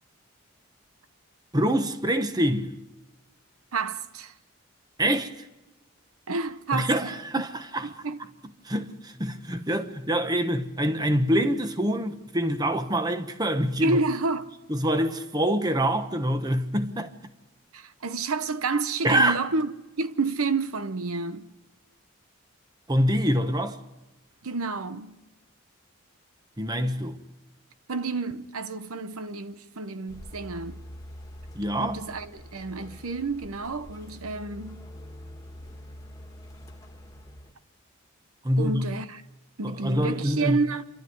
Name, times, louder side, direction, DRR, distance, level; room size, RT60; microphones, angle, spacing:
voice 1, 1.5-2.7 5.0-5.3 6.7-7.9 8.6-14.0 14.7-17.1 19.0-19.4 22.9-23.8 26.6-27.2 31.5-32.0 38.4-38.9 39.6-40.6, equal, 15° right, 1.0 m, -25 dB
voice 2, 3.7-4.3 5.0-5.2 6.3-7.1 7.8-8.2 13.8-14.5 17.7-19.7 20.0-21.5 24.4-25.2 27.9-30.8 31.8-34.8 38.6-39.2 39.6-40.8, right 3 dB, 80° right, 1.0 m, -30 dB
sound 1, 30.1-37.5, equal, 15° left, 1.7 m, -45 dB
28.0 x 12.5 x 9.5 m
head